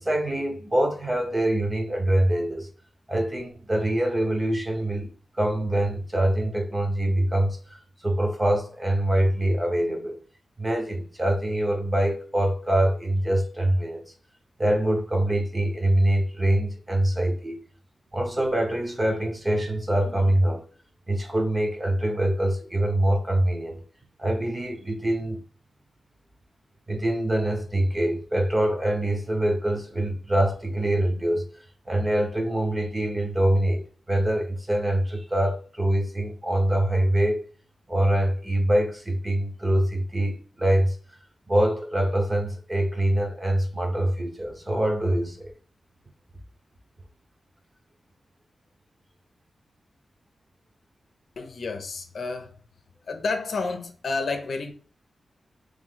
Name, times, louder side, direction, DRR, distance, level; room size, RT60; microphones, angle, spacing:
voice 1, 0.0-2.7 3.1-10.2 10.6-14.0 14.6-17.6 18.1-20.6 21.1-23.8 24.2-25.4 26.9-31.5 31.9-37.4 37.9-41.0 41.5-45.5, right 1 dB, 20° right, 1.1 m, -24 dB
voice 2, 51.4-52.5 53.1-54.7, left 3 dB, 70° left, 0.7 m, -30 dB
3.2 x 3.1 x 3.8 m
wide cardioid pair, 100°, 0 cm